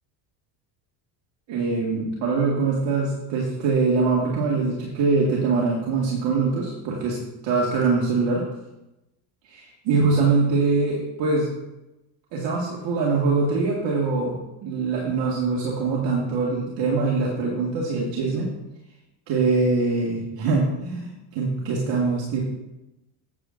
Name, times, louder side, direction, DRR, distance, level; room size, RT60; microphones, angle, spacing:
voice 1, 1.5-7.2 7.4-8.5 9.5-11.5 12.3-18.5 19.3-22.4, right 4 dB, 60° right, -3 dB, 2.0 m, -23 dB
10.5 x 8.7 x 2.6 m, 0.95 s
hypercardioid pair, 75°, 50 cm